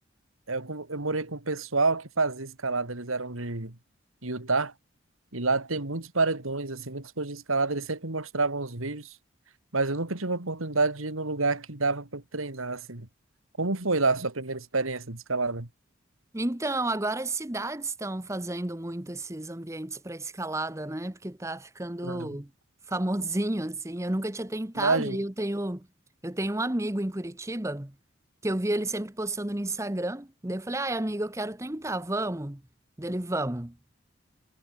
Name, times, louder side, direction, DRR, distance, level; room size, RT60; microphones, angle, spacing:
voice 1, 0.5-3.8 4.2-4.7 5.3-9.1 9.7-13.1 13.6-15.7 22.0-22.4 24.8-25.2, right 3 dB, 90° right, 2.6 m, -28 dB
voice 2, 16.3-22.5 22.9-25.9 26.2-27.9 28.4-32.6 33.0-33.8, right 1 dB, 15° right, 1.0 m, -31 dB
head